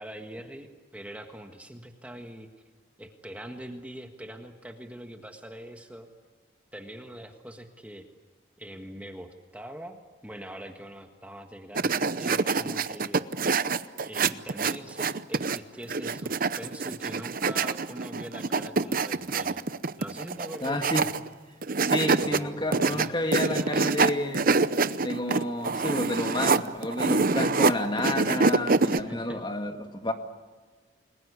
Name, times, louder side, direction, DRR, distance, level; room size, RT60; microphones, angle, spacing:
voice 1, 0.0-2.5 3.0-6.1 6.7-8.1 8.6-13.3 14.0-19.6 20.0-21.0 22.2-23.9 29.1-29.4, right 1 dB, 5° right, 1.6 m, -43 dB
sound 1, 11.8-15.6 15.9-21.3 21.6-22.4 22.7-27.7 28.0-29.0, right 4 dB, 45° right, 0.8 m, -25 dB
voice 2, 20.6-21.1 21.8-24.5 25.0-30.1, left 1 dB, 25° left, 1.9 m, -30 dB
29.5 x 21.5 x 8.3 m
head